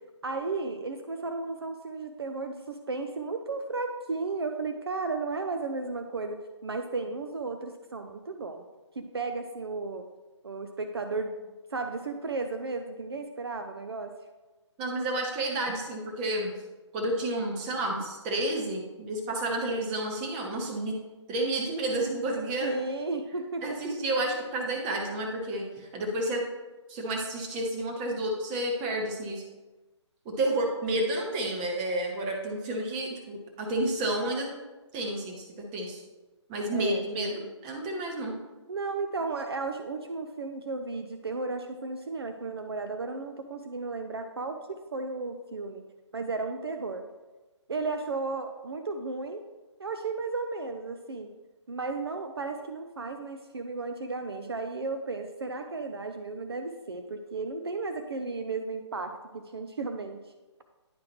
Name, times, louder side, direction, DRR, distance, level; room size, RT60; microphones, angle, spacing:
voice 1, 0.2-8.6 9.0-10.1 10.4-14.1 22.6-23.8 36.7-37.5 38.7-45.8 46.1-47.0 47.7-49.4 49.8-51.3 51.7-60.2, right 3 dB, 55° right, 7 dB, 0.6 m, -34 dB
voice 2, 14.8-16.5 16.9-21.0 21.3-22.8 23.6-26.5 26.9-29.4 30.2-34.5 34.9-36.0 36.5-38.4, right 1 dB, 20° right, 0 dB, 1.0 m, -30 dB
10.0 x 4.8 x 3.0 m, 1.2 s
figure-of-eight pair, 140°, 15 cm